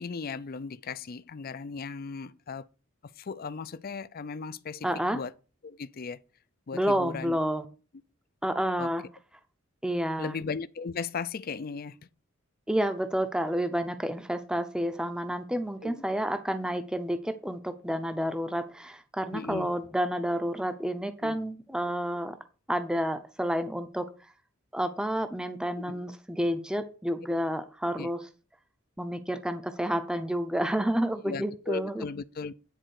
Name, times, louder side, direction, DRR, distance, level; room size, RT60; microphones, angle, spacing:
voice 1, 0.0-2.7 3.2-5.3 5.6-6.2 6.7-7.4 8.8-8.9 10.2-12.0 15.8-15.9 19.3-19.7 21.2-21.3 25.9-26.0 28.0-28.1 31.2-32.5, left 5 dB, 50° left, 0.5 m, -37 dB
voice 2, 4.8-5.2 6.7-7.6 8.4-9.0 9.8-10.4 12.7-22.4 22.7-24.1 24.7-28.2 29.0-32.1, equal, 5° right, 0.7 m, -30 dB
10.0 x 4.3 x 6.5 m
head